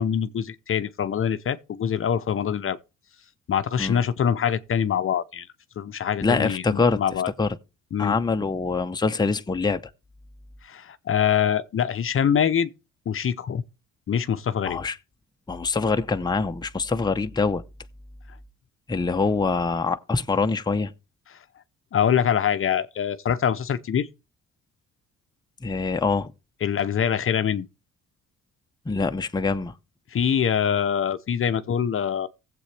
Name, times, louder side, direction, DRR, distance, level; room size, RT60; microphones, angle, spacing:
voice 1, 0.0-2.8 3.5-5.5 5.8-7.3 7.9-8.2 10.6-12.7 13.1-13.6 14.1-14.8 21.9-24.1 26.6-27.7 30.1-32.3, left 8 dB, 45° left, 0.7 m, -24 dB
voice 2, 6.2-7.0 7.4-7.6 8.0-9.8 14.6-15.0 15.5-17.6 18.9-20.9 25.6-26.3 28.9-29.7, left 4 dB, 15° left, 0.7 m, -24 dB
16.5 x 7.7 x 3.3 m
cardioid pair, 90°, 30 cm